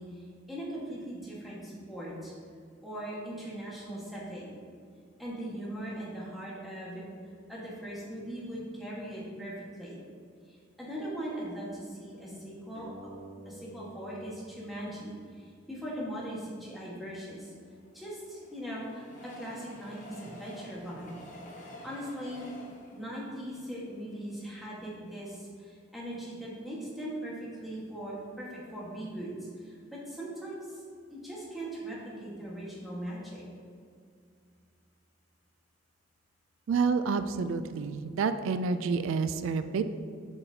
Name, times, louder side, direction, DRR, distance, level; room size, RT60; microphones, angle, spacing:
voice 1, 0.0-2.3 2.8-4.5 5.2-7.0 7.5-10.0 10.5-12.9 13.4-17.5 17.9-21.1 21.8-22.5 22.9-30.8 31.1-33.4, right 1 dB, ahead, -6 dB, 1.4 m, -40 dB
sound 1, 12.7-15.9, right 2 dB, 75° left, 1.0 m, -51 dB
Train, 17.4-24.7 25.2-25.3 25.5-25.6, left 1 dB, 40° left, 0.8 m, -50 dB
voice 2, 36.7-39.8, right 5 dB, 85° right, 10 dB, 0.3 m, -29 dB
8.0 x 5.7 x 2.8 m, 2.2 s
head